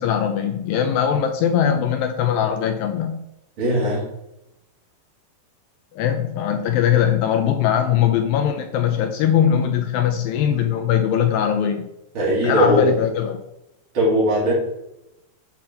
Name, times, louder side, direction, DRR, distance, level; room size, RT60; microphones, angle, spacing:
voice 1, 0.0-3.2 5.9-11.9 12.4-13.4, left 9 dB, 85° left, 6 dB, 2.1 m, -20 dB
voice 2, 3.6-4.0 12.1-12.8 13.9-14.5, equal, 40° right, -6 dB, 2.3 m, -19 dB
7.5 x 4.4 x 5.6 m, 0.87 s
omnidirectional pair, 4.7 m